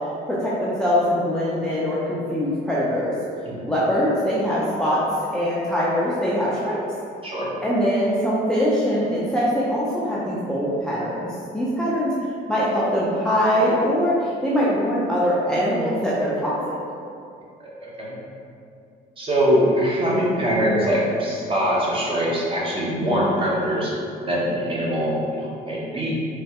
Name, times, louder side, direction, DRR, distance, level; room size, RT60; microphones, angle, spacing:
voice 1, 0.3-3.1 3.7-5.0 5.3-6.8 7.6-11.3 11.5-12.1 12.5-16.8, equal, 5° left, -8 dB, 0.4 m, -22 dB
voice 2, 17.6-18.2 19.2-23.9 24.3-26.1, equal, 30° right, -5 dB, 0.8 m, -23 dB
3.1 x 2.2 x 2.8 m, 2.4 s
cardioid pair, 110°, 17 cm